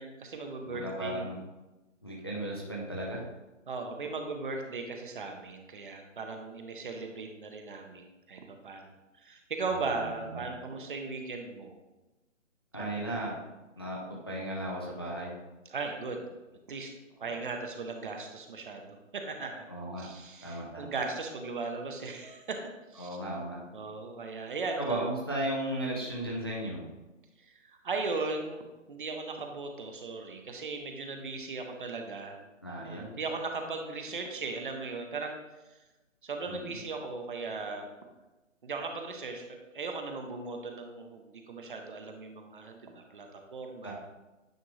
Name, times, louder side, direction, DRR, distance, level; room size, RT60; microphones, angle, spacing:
voice 1, 0.0-1.2 3.7-8.9 9.2-11.8 12.8-13.3 15.7-16.3 16.7-16.9 17.2-19.7 20.0-22.6 22.9-23.1 23.7-25.0 25.9-26.1 27.5-28.6 28.9-32.4 32.8-35.4 35.7-35.8 36.2-37.9 38.6-43.9, right 3 dB, 40° right, 4 dB, 0.8 m, -37 dB
voice 2, 0.6-1.4 2.0-3.3 9.7-10.5 12.7-13.4 13.8-15.3 17.2-17.4 19.7-20.1 20.4-20.9 23.0-23.6 24.8-26.8 32.6-33.1 36.5-36.8 43.8-43.9, right 1 dB, 20° left, -3 dB, 0.4 m, -36 dB
9.0 x 3.5 x 3.1 m, 1.1 s
figure-of-eight pair, 155°, 39 cm